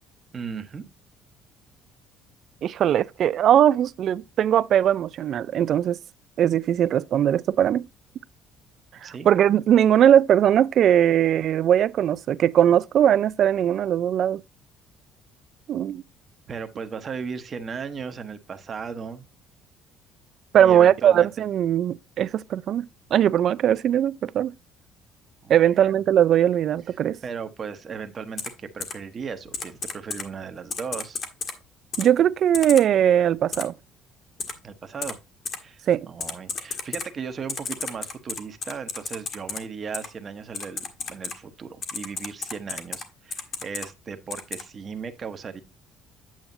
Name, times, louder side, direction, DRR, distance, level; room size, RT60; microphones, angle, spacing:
voice 1, 0.3-0.8 9.0-9.3 16.5-19.2 20.6-21.3 25.4-25.9 27.2-31.2 34.6-35.2 35.6-35.8 36.1-45.6, right 6 dB, 30° right, 1.0 m, -36 dB
voice 2, 2.6-6.0 6.4-7.8 9.0-14.4 15.7-16.0 20.5-22.9 23.1-24.5 25.5-27.2 32.0-33.7 35.9-36.1, right 10 dB, 50° right, 0.3 m, -20 dB
Typing, 28.4-28.5 28.8-28.9 29.5-30.2 30.7-31.5 31.9-32.0 32.5-32.8 33.5-33.6 34.4-34.5 35.0-35.1 35.4-35.6 36.2-37.1 37.5-39.6 39.9-40.1 40.5-41.3 41.8-43.0 43.3-43.9 44.3-44.6, left 5 dB, 40° left, 1.4 m, -32 dB
8.9 x 7.1 x 2.6 m
cardioid pair, 140°, 0 cm